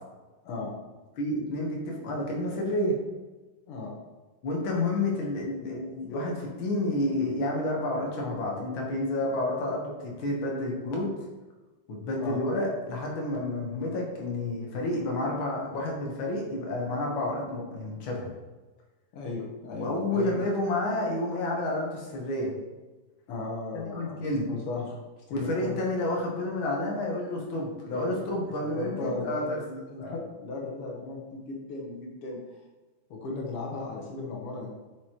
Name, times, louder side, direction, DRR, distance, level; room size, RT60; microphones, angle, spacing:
voice 1, 1.2-2.9 4.4-11.1 11.9-18.3 19.8-22.5 23.7-24.5 25.3-29.6 30.0-30.2, left 1 dB, 65° left, -1 dB, 2.0 m, -30 dB
voice 2, 19.1-20.4 23.3-24.2 24.5-25.0 25.3-25.8 27.9-28.0 28.8-32.6 33.1-34.7, left 3 dB, 90° left, -1 dB, 2.1 m, -36 dB
8.1 x 4.8 x 3.0 m, 1.2 s
omnidirectional pair, 2.4 m